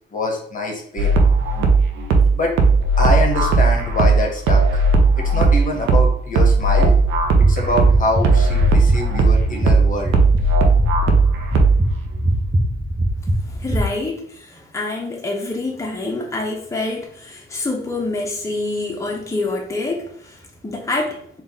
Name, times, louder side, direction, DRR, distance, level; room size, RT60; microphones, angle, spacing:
voice 1, 0.1-1.2 2.3-2.6 3.0-4.8 5.2-6.9 7.5-10.1, left 2 dB, 40° left, 1 dB, 1.0 m, -24 dB
sound 1, 1.0-12.0, right 3 dB, 90° right, 0.6 m, -16 dB
sound 2, 7.2-13.8, right 1 dB, 10° right, 0.8 m, -23 dB
voice 2, 13.5-21.4, left 2 dB, 15° left, -1 dB, 0.9 m, -26 dB
3.9 x 2.5 x 3.6 m, 0.66 s
cardioid pair, 90°, 20 cm